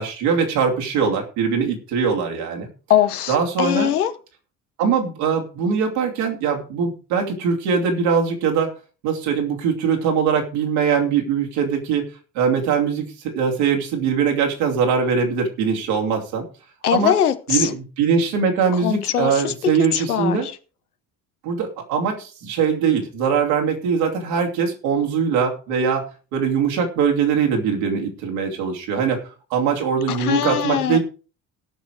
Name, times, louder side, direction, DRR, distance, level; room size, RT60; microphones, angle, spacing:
voice 1, 0.0-2.7 3.3-3.9 4.8-8.8 9.0-12.0 12.3-16.4 16.9-17.1 17.5-20.5 21.4-26.0 26.3-29.2 29.5-31.0, right 6 dB, 65° right, 3.0 m, -21 dB
voice 2, 2.9-4.1 16.8-17.7 18.8-19.5 19.9-20.4 30.1-31.0, left 10 dB, 80° left, 0.9 m, -21 dB
18.0 x 6.2 x 4.7 m
figure-of-eight pair, 50°, 44 cm